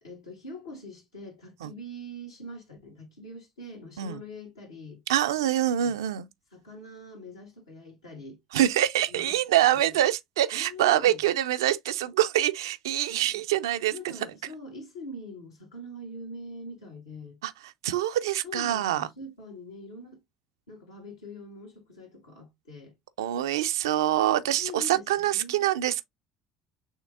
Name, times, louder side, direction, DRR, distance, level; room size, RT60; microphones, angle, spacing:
voice 1, 0.0-5.0 5.5-5.9 6.5-8.4 9.1-10.0 10.5-11.2 13.1-13.4 13.9-17.4 18.4-20.2 20.7-22.9 24.6-25.6, left 1 dB, 85° left, 1.6 m, -43 dB
voice 2, 5.1-6.3 8.5-13.9 17.4-17.5 17.8-19.1 23.2-26.0, right 12 dB, 75° right, 0.4 m, -25 dB
6.3 x 3.2 x 2.4 m
figure-of-eight pair, 60°, 2 cm